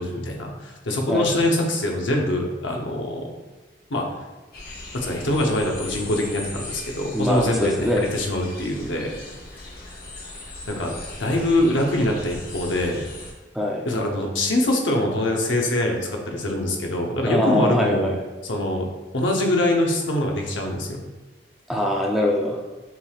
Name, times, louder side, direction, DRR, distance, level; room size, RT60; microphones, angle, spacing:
voice 1, 0.0-3.3 3.9-4.1 4.9-9.1 10.7-10.9 11.2-13.0 13.8-18.1 18.4-18.9 19.1-21.0, left 1 dB, 90° left, 1 dB, 0.8 m, -24 dB
sound 1, 4.5-13.3, left 2 dB, 50° left, 0.9 m, -39 dB
voice 2, 7.1-8.1 13.5-13.8 17.3-18.1 21.7-22.6, left 1 dB, ahead, -1 dB, 0.4 m, -23 dB
5.7 x 3.4 x 2.3 m, 1.2 s
head